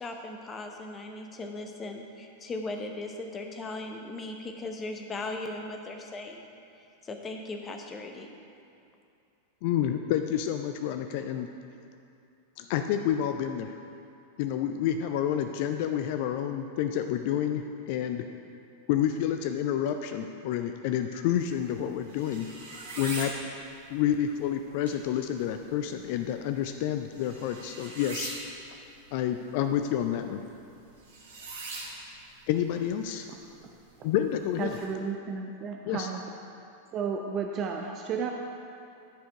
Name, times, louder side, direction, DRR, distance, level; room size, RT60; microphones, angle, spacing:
voice 1, 0.0-6.4 7.0-8.3, left 2 dB, 20° left, 3 dB, 0.8 m, -38 dB
voice 2, 9.6-11.5 12.6-13.8 14.4-18.3 18.9-22.5 23.0-23.3 23.9-28.3 29.1-30.4 32.5-33.3 34.0-34.8 35.9-36.1, left 10 dB, 50° left, 7 dB, 0.3 m, -29 dB
sound 1, 21.4-34.8, right 2 dB, 65° right, 1.9 m, -44 dB
voice 3, 34.6-36.2 36.9-38.3, right 6 dB, 30° right, 2 dB, 0.5 m, -33 dB
11.0 x 5.1 x 4.7 m, 2.6 s
figure-of-eight pair, 90°, 0 cm